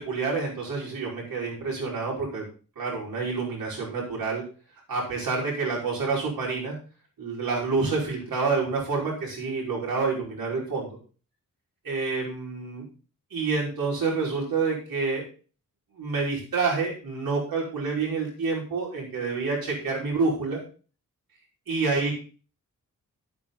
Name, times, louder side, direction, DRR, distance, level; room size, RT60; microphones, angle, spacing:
voice 1, 0.1-2.5 2.8-4.4 4.9-6.7 7.2-11.0 11.8-12.8 13.3-15.2 16.0-20.6 21.7-22.1, right 4 dB, 90° right, -3 dB, 5.4 m, -28 dB
10.0 x 9.1 x 4.0 m, 0.37 s
wide cardioid pair, 95°, 34 cm